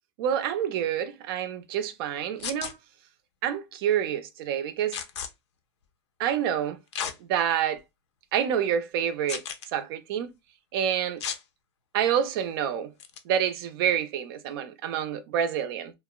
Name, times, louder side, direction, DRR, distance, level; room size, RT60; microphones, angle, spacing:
voice 1, 0.2-2.7 3.4-5.0 6.2-6.8 7.3-7.8 8.3-9.4 9.7-10.3 10.7-11.2 11.9-12.9 13.3-15.9, right 9 dB, 60° right, 0.5 m, -27 dB
sound 1, 2.4-2.7 4.9-5.3 6.9-7.2 7.8-7.9 9.3-9.7 11.2-11.4 13.0-13.2, left 7 dB, 80° left, 0.5 m, -33 dB
2.9 x 2.0 x 2.2 m
hypercardioid pair, 115°, 14 cm